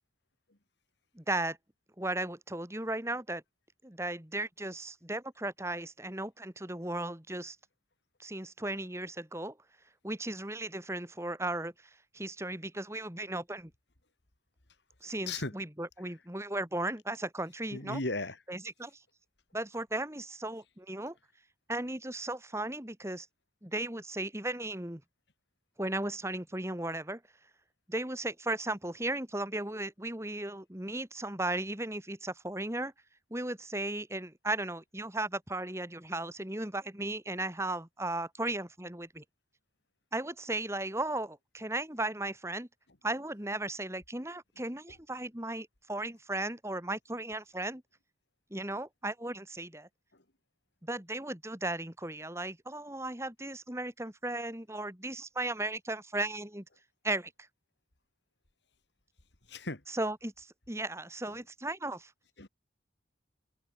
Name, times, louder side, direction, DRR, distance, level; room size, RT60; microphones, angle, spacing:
voice 1, 1.1-1.6 2.0-3.4 3.8-7.6 8.2-9.6 10.0-11.7 12.1-13.7 15.0-18.0 18.5-19.0 19.5-21.1 21.7-23.3 23.6-25.0 25.8-27.2 27.9-32.9 33.3-39.2 40.1-42.7 43.0-47.8 48.5-49.9 50.8-56.6 57.0-57.3 59.9-62.1, right 2 dB, 15° right, 2.6 m, -36 dB
voice 2, 15.0-15.5 17.7-18.4 50.1-50.2 59.5-59.8 62.4-62.5, left 2 dB, 65° left, 2.9 m, -36 dB
head